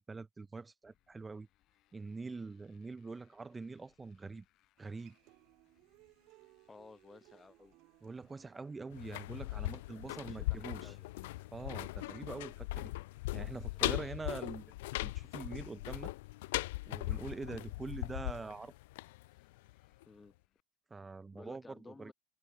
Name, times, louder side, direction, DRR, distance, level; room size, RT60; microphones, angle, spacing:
voice 1, 0.0-1.5 1.9-4.4 4.8-5.2 8.0-10.9 11.5-12.9 13.3-14.7 15.0-16.1 16.9-18.7 20.9-22.1, right 4 dB, 15° right, 0.6 m, -44 dB
Motorcycle, 0.8-20.6, left 15 dB, 45° left, 5.6 m, -75 dB
Human voice / Acoustic guitar, 4.8-12.8, right 22 dB, 55° right, 6.7 m, -66 dB
voice 2, 6.7-7.7 9.9-11.1 13.7-14.0 20.1-20.3 21.3-22.1, left 4 dB, 15° left, 1.7 m, -56 dB
sound 1, 8.9-19.7 20.0-20.1, left 19 dB, 80° left, 0.5 m, -39 dB
open air
supercardioid pair, 125°, 0 cm